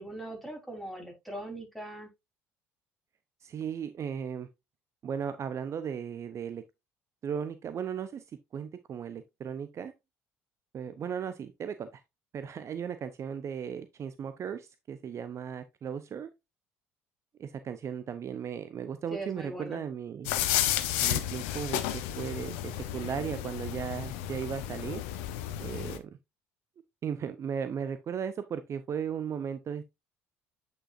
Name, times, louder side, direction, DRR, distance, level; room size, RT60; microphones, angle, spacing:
voice 1, 0.0-2.1 19.1-19.8, right 1 dB, ahead, 3.8 m, -40 dB
voice 2, 3.4-4.5 5.0-6.6 7.2-8.3 8.5-9.9 10.7-12.0 12.3-16.3 17.4-20.3 21.0-25.0 25.6-26.1 27.0-29.8, right 7 dB, 45° right, 0.6 m, -36 dB
sound 1, 20.2-26.0, left 12 dB, 75° left, 0.8 m, -32 dB
8.5 x 5.3 x 2.5 m
hypercardioid pair, 60°, 7 cm